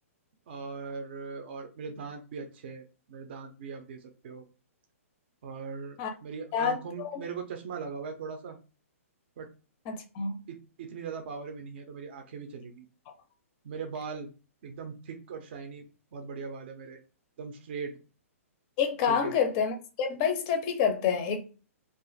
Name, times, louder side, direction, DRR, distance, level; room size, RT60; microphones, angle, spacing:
voice 1, 0.5-4.4 5.4-8.6 9.4-9.5 10.5-12.9 13.6-14.3 14.6-15.9 16.1-17.0 17.4-17.9 19.1-19.3, right 5 dB, 45° right, 0.5 m, -40 dB
voice 2, 6.5-7.2 9.9-10.4 18.8-21.4, left 7 dB, 25° left, 0.5 m, -28 dB
2.4 x 2.4 x 3.9 m
hypercardioid pair, 160°, 8 cm